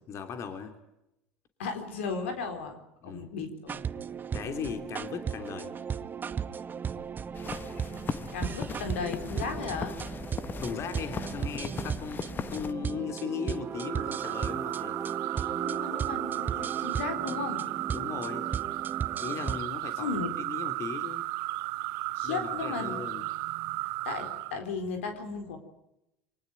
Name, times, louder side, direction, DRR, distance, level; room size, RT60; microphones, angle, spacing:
voice 1, 0.1-0.8 3.0-3.3 4.3-5.8 9.4-9.6 10.6-15.0 17.9-18.5 19.2-21.3 22.2-23.3, left 7 dB, 50° left, 7 dB, 3.0 m, -38 dB
voice 2, 1.6-2.8 3.0-3.8 8.3-9.9 15.6-17.6 20.0-20.3 22.2-23.0 24.0-25.6, left 4 dB, 80° left, 7 dB, 4.2 m, -35 dB
sound 1, 3.7-19.6, right 7 dB, 30° right, 1.0 m, -36 dB
sound 2, 7.4-12.7, left 5 dB, 30° left, 1.4 m, -38 dB
sound 3, 13.7-24.6, right 19 dB, 65° right, 1.2 m, -34 dB
25.0 x 19.0 x 9.2 m, 0.87 s
hypercardioid pair, 80°, 6 cm